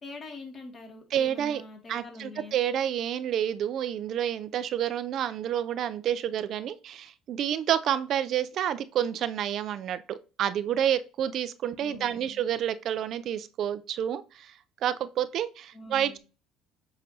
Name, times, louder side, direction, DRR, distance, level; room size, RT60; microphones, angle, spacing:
voice 1, 0.0-2.6 11.8-12.4 15.7-16.2, left 3 dB, 35° left, 2.4 m, -44 dB
voice 2, 1.1-1.6 1.9-16.2, right 10 dB, 55° right, 0.4 m, -29 dB
7.6 x 5.0 x 2.8 m
cardioid pair, 115°, 0 cm